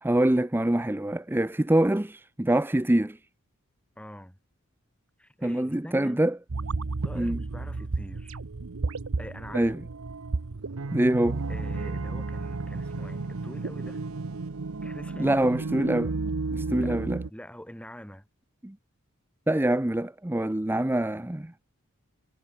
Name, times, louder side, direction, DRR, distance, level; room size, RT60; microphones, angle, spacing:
voice 1, 0.0-3.2 5.4-6.4 7.1-7.4 9.5-9.8 10.9-11.4 15.2-16.1 16.5-17.2 18.6-18.8 19.5-21.5, right 1 dB, 10° right, 0.6 m, -25 dB
voice 2, 4.0-4.4 5.2-6.2 7.0-8.4 9.2-9.7 11.5-14.1 14.8-15.4 16.8-17.0 17.3-18.3, equal, 5° left, 7.1 m, -44 dB
sound 1, 6.5-17.3, right 3 dB, 75° right, 0.8 m, -32 dB
head